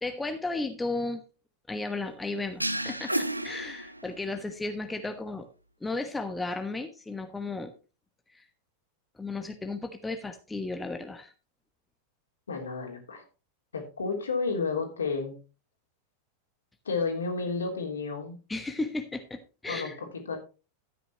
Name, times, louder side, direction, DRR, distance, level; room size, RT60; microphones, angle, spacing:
voice 1, 0.0-1.2 1.7-5.5 5.8-7.7 8.3-8.4 9.2-11.3 18.5-19.9, left 2 dB, 10° left, 6 dB, 1.2 m, -34 dB
sound 1, 2.6-4.4, right 1 dB, 85° right, 0.6 m, -32 dB
voice 2, 12.5-13.2 13.7-15.4 16.8-18.4 19.6-20.4, left 4 dB, 70° left, 2 dB, 3.3 m, -31 dB
13.5 x 9.2 x 3.0 m, 0.33 s
figure-of-eight pair, 90°, 0 cm